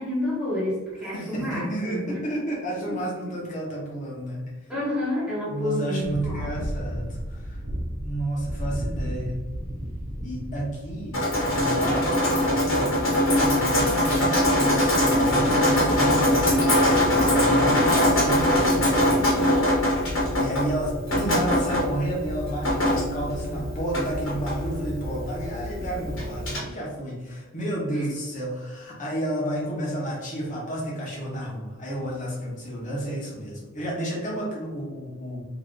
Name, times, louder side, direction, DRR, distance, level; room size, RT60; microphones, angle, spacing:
voice 1, 0.0-2.2 4.7-6.5 27.9-28.1, left 1 dB, 5° right, -9 dB, 1.0 m, -29 dB
voice 2, 1.0-4.7 5.5-7.6 8.0-9.4 10.2-13.0 13.3-19.2 20.4-35.4, right 1 dB, 40° left, -4 dB, 1.2 m, -31 dB
sound 1, 6.0-14.5 14.8-14.9, equal, 80° right, 0.9 m, -34 dB
Drip, 11.1-26.6, left 1 dB, 80° left, 1.4 m, -22 dB
3.0 x 2.8 x 3.8 m, 1.3 s
head